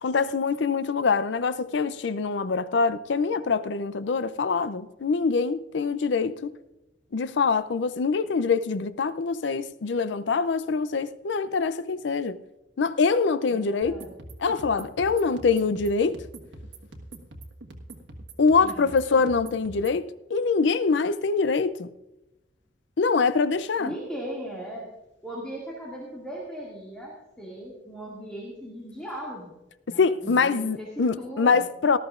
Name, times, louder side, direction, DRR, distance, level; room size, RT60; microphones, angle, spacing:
voice 1, 0.0-6.6 7.1-12.4 12.8-14.0 14.4-16.2 18.4-21.9 23.0-23.9 30.0-32.0, left 4 dB, 70° left, 0.5 m, -24 dB
voice 2, 13.5-14.1 18.6-18.9 23.8-24.9 25.2-29.6 29.9-31.6, equal, 5° left, 2.2 m, -38 dB
sound 1, 13.8-20.0, right 1 dB, 80° right, 1.5 m, -44 dB
18.5 x 13.0 x 2.5 m
head